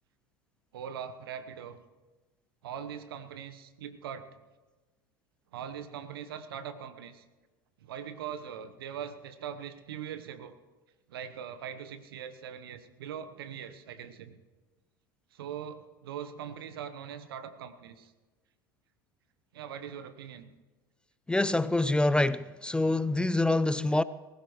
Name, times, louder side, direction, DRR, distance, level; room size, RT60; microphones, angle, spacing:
voice 1, 0.7-1.8 2.6-4.2 5.5-7.2 7.8-10.5 11.1-14.4 15.3-18.1 19.5-20.5, right 8 dB, 75° right, 1.0 m, -41 dB
voice 2, 21.3-24.0, left 2 dB, 5° left, 0.4 m, -26 dB
19.5 x 16.5 x 3.1 m
hypercardioid pair, 80°, 12 cm